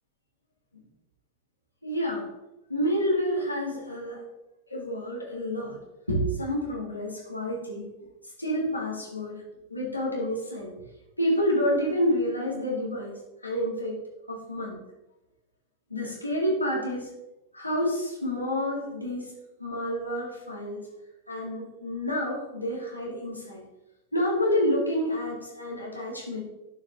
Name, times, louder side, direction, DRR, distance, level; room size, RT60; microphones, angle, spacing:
voice 1, 1.8-2.3 2.7-4.2 4.7-5.8 6.1-7.9 8.4-9.4 9.7-10.7 11.2-13.1 13.4-14.0 14.3-14.8 15.9-17.1 17.5-19.3 19.6-20.9 21.3-23.6 24.1-26.4, equal, 85° left, -3 dB, 2.4 m, -28 dB
11.5 x 4.7 x 3.7 m, 0.95 s
figure-of-eight pair, 90°, 0 cm